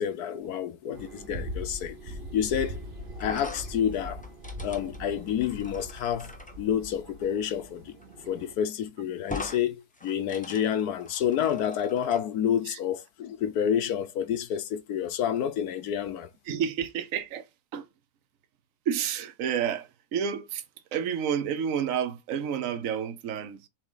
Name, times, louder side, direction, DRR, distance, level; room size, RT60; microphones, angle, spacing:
voice 1, 0.0-2.8 3.2-4.2 4.6-6.3 6.6-7.9 8.3-16.3, left 9 dB, 70° left, 1.1 m, -29 dB
sound 1, 0.9-8.5, equal, 40° right, 1.0 m, -41 dB
sound 2, 3.2-6.5 8.0-8.1 8.4-8.5 9.2-9.6 9.9-12.2, left 2 dB, 5° left, 0.7 m, -42 dB
voice 2, 16.5-17.9 18.9-20.6 20.9-23.7, right 8 dB, 55° right, 1.1 m, -30 dB
7.3 x 3.7 x 3.9 m
omnidirectional pair, 1.8 m